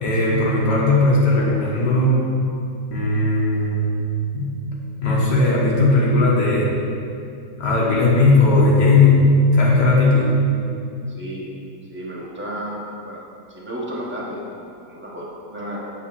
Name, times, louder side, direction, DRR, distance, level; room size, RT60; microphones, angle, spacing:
voice 1, 0.0-2.2 2.9-4.5 5.0-6.7 7.6-10.4, left 2 dB, 85° left, -5 dB, 1.9 m, -17 dB
voice 2, 11.1-11.5 11.9-13.2 13.5-15.8, equal, 5° right, -5 dB, 1.3 m, -32 dB
8.8 x 4.0 x 6.9 m, 2.5 s
omnidirectional pair, 1.8 m